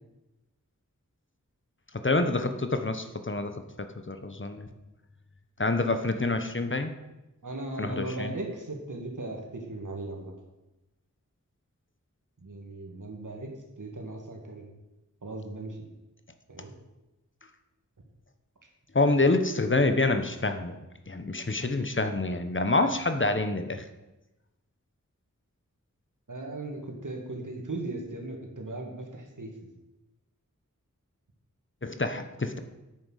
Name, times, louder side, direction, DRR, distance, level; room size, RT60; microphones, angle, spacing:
voice 1, 1.9-4.7 5.6-6.9 7.8-8.3 18.9-23.8 31.8-32.6, left 2 dB, 40° left, 8 dB, 1.1 m, -27 dB
voice 2, 7.4-10.3 12.4-14.7 15.2-15.9 16.5-16.7 26.3-29.5, right 2 dB, 75° right, 1 dB, 2.4 m, -37 dB
9.5 x 8.7 x 6.5 m, 1.0 s
wide cardioid pair, 55°, 31 cm